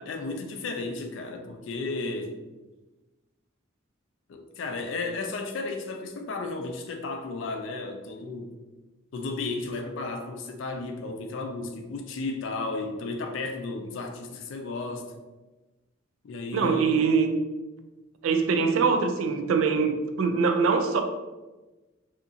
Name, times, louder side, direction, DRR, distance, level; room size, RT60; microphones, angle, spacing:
voice 1, 0.1-2.3 4.3-8.6 9.1-15.1 16.2-17.0, left 3 dB, 65° left, 0.4 m, -34 dB
voice 2, 16.5-17.4 18.2-21.0, right 5 dB, 75° right, 0.3 m, -23 dB
2.8 x 2.5 x 2.4 m
head